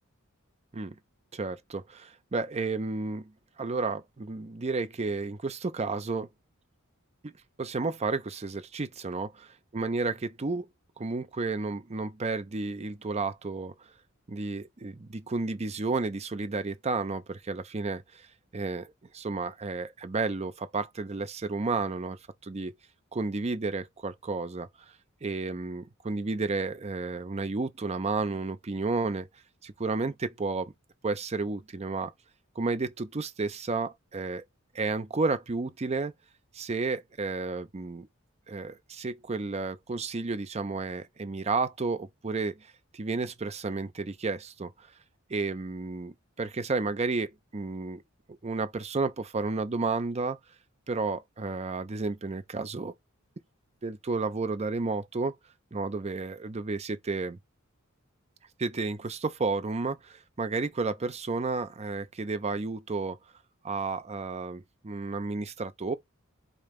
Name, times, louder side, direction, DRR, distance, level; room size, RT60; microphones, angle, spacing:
voice 1, 1.3-3.3 3.6-6.3 7.2-7.3 7.6-9.3 9.7-10.7 11.0-13.7 14.3-18.3 18.5-22.7 23.1-24.7 25.2-29.3 29.6-30.7 31.0-32.1 32.6-34.4 34.7-36.1 36.5-38.1 38.5-44.9 45.3-48.0 48.3-50.4 50.9-52.9 53.8-55.4 55.7-57.4 58.6-63.2 63.6-65.9, right 3 dB, 30° right, 0.6 m, -32 dB
5.1 x 2.8 x 3.3 m
head